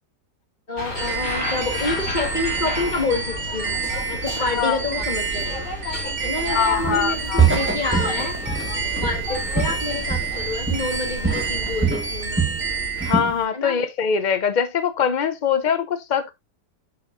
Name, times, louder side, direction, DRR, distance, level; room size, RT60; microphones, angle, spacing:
voice 1, 0.7-3.8 4.1-5.7 6.2-8.4 9.0-12.4 13.5-13.8, left 3 dB, 30° left, 1.5 m, -28 dB
sound 1, 0.8-11.9, left 2 dB, 50° left, 3.0 m, -33 dB
sound 2, 1.0-13.2, right 4 dB, 50° right, 2.8 m, -29 dB
voice 2, 4.4-4.8 6.5-7.5 13.0-16.3, left 7 dB, 75° left, 0.4 m, -23 dB
Walk footsteps, 6.8-7.1 7.4-10.4 10.7-11.0 11.2-12.6 13.0-13.4, right 5 dB, 10° right, 1.1 m, -23 dB
7.7 x 5.5 x 2.5 m
omnidirectional pair, 1.8 m